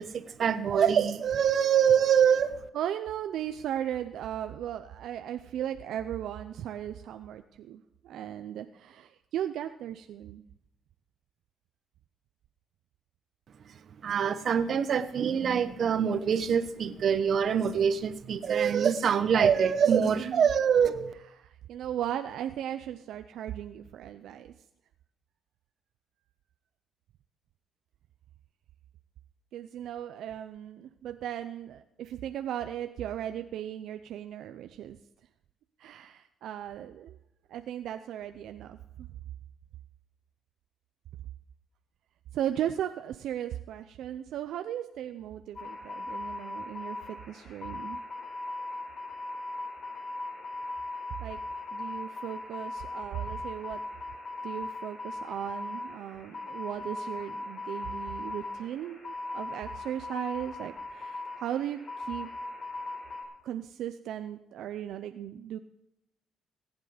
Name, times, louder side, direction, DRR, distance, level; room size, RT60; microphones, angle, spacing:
voice 1, 0.0-2.6 14.0-21.1, right 7 dB, 55° right, 0.9 m, -25 dB
voice 2, 2.7-10.4 19.8-20.5 21.4-24.5 29.5-35.0 35.8-37.2 37.5-39.1 42.3-48.0 51.2-51.4 51.7-53.8 54.4-62.3 63.4-65.6, right 11 dB, 80° right, 0.5 m, -37 dB
sound 1, 45.6-63.2, left 2 dB, 45° left, 4.9 m, -39 dB
19.0 x 8.3 x 5.0 m
cardioid pair, 90°, 0 cm